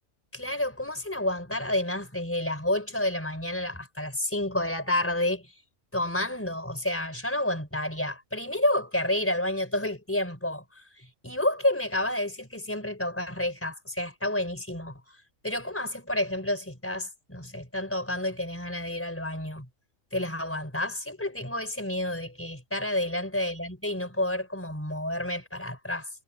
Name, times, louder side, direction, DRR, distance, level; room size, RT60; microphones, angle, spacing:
voice 1, 0.3-5.5 5.9-15.0 15.4-19.7 20.1-26.1, left 1 dB, 10° left, 4.3 m, -30 dB
omnidirectional pair, 1.4 m